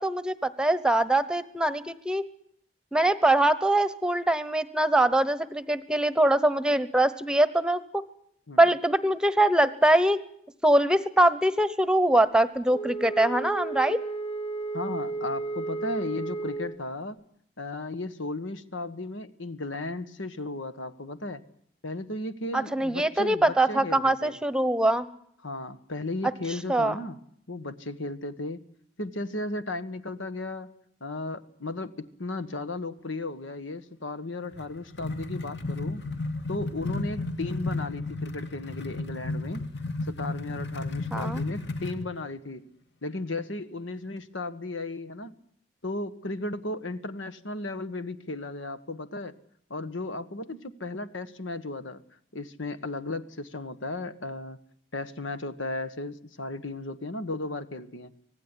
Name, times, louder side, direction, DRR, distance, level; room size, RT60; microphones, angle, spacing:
voice 1, 0.0-2.2 2.9-8.0 8.6-10.2 10.6-14.0 22.5-25.1 26.7-26.9 41.1-41.4, right 1 dB, 5° right, 14 dB, 1.0 m, -23 dB
Wind instrument woodwind instrument, 12.7-16.8, right 3 dB, 25° left, 1.0 m, -33 dB
voice 2, 14.7-17.2 17.6-21.4 21.8-24.4 25.4-27.2 27.5-28.6 29.0-30.7 31.0-36.0 36.5-39.6 40.1-42.7 43.0-45.3 45.8-49.3 49.7-52.0 52.3-54.6 54.9-58.1, left 2 dB, 85° left, 12 dB, 1.7 m, -35 dB
sound 1, 34.5-42.1, left 2 dB, 60° left, 2.4 m, -33 dB
25.5 x 18.0 x 10.0 m, 0.69 s
head